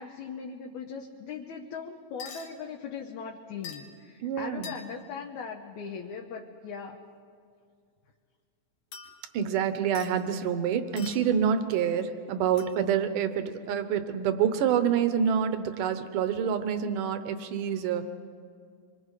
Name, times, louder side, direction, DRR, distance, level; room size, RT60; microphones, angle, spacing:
voice 1, 0.0-7.0, left 6 dB, 70° left, 1 dB, 2.3 m, -39 dB
sound 1, 2.2-2.5 3.6-4.0 4.6-5.1 8.9-9.5 10.0-10.1 11.0-11.4 12.6-12.8, left 6 dB, 85° left, 3.2 m, -45 dB
voice 2, 4.2-4.7 9.3-18.1, right 8 dB, 80° right, 9 dB, 2.6 m, -27 dB
26.0 x 24.0 x 4.9 m, 2.2 s
omnidirectional pair, 3.8 m